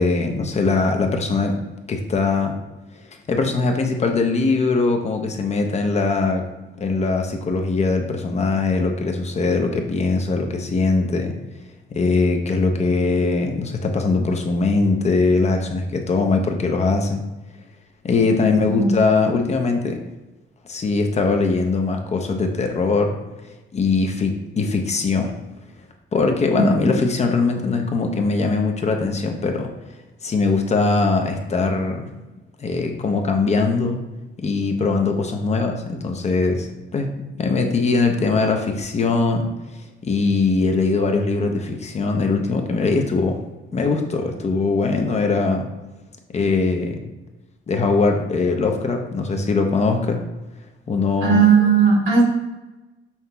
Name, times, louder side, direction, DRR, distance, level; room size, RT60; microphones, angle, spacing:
voice 1, 0.0-1.6 1.9-2.6 3.3-6.4 6.8-11.3 11.9-17.2 18.0-20.0 20.7-23.2 23.7-25.3 26.1-29.7 30.2-32.1 32.6-34.0 34.4-36.7 36.9-37.1 37.4-39.5 40.0-43.4 43.7-45.7 46.3-47.0 47.7-50.2 50.9-51.4, left 3 dB, 35° left, 3 dB, 0.5 m, -21 dB
voice 2, 51.2-52.2, right 5 dB, 85° right, -4 dB, 1.4 m, -15 dB
5.6 x 2.8 x 2.2 m, 1.1 s
cardioid pair, 90°, 20 cm